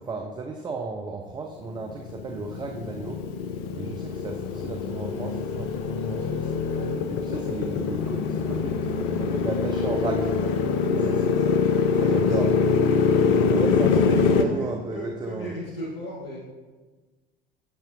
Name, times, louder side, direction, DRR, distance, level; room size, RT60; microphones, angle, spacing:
voice 1, 0.0-3.2 3.8-10.3 10.9-11.0 12.0-12.5 13.3-15.5, right 3 dB, 15° right, 3 dB, 0.4 m, -34 dB
Motorcycle, 1.8-14.5, left 5 dB, 50° left, 0.6 m, -24 dB
voice 2, 10.9-11.6 12.0-12.4 13.1-16.4, equal, 75° left, -5 dB, 1.4 m, -37 dB
8.3 x 6.5 x 2.7 m, 1.3 s
figure-of-eight pair, 70°, 29 cm